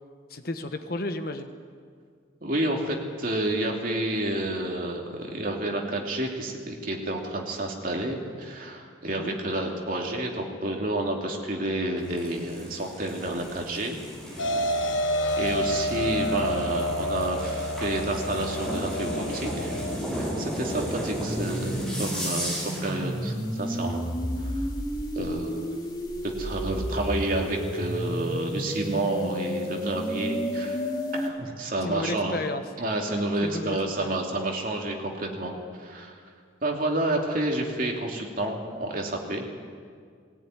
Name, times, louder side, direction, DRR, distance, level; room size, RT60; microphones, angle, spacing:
voice 1, 0.3-1.5 9.1-9.4 31.8-32.6 33.4-34.2, left 2 dB, 50° left, 8 dB, 1.2 m, -33 dB
voice 2, 2.4-14.0 14.9-15.0 15.4-19.8 20.2-24.1 24.4-24.7 25.1-25.8 26.4-32.4 32.8-35.5 35.8-36.2 36.6-39.4, right 1 dB, 45° right, 0 dB, 2.9 m, -30 dB
sound 1, 12.0-23.0, equal, 5° left, 6.4 m, -35 dB
sound 2, 14.4-20.0, equal, 85° left, 1.4 m, -29 dB
sound 3, 21.3-31.3, equal, 20° left, 2.5 m, -31 dB
19.5 x 17.0 x 9.8 m, 2.1 s
head